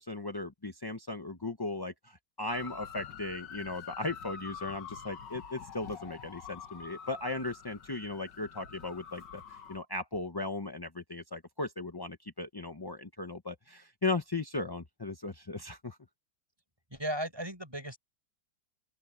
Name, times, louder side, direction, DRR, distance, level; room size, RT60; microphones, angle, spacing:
voice 1, 0.0-16.0, left 2 dB, 25° left, 0.5 m, -37 dB
sound 1, 2.5-9.8, left 7 dB, 75° left, 2.1 m, -46 dB
voice 2, 16.9-18.0, right 1 dB, 15° right, 6.2 m, -36 dB
open air
omnidirectional pair, 1.9 m